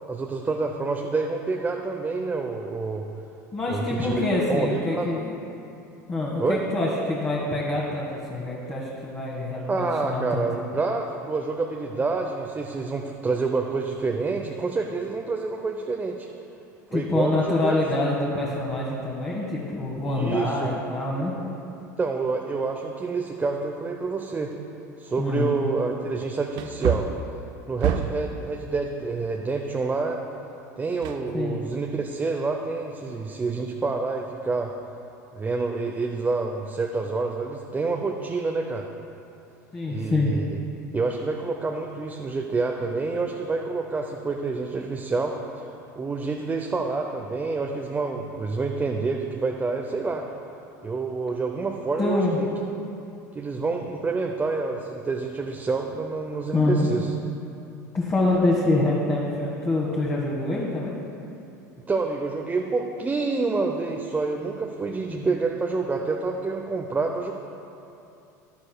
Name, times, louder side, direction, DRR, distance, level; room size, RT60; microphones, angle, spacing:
voice 1, 0.1-3.1 3.7-5.2 6.4-6.6 9.7-16.3 16.9-17.7 20.0-20.7 21.8-24.5 25.0-27.1 27.7-30.2 30.8-34.7 35.3-38.9 39.9-40.6 40.9-45.7 46.0-50.2 50.8-52.5 53.3-57.1 61.9-67.3, right 3 dB, 20° right, 1 dB, 0.7 m, -28 dB
voice 2, 3.5-5.3 6.1-10.4 16.9-21.3 25.2-25.5 31.3-31.6 39.7-40.3 52.0-52.4 56.5-56.9 57.9-60.9 65.1-65.3, left 2 dB, 25° left, -5 dB, 1.7 m, -25 dB
Wood, 25.2-25.3 26.5-28.4 31.0-31.8 32.2-32.3, right 9 dB, 55° right, 0.5 m, -28 dB
11.5 x 11.5 x 2.3 m, 2.7 s
hypercardioid pair, 80°, 10 cm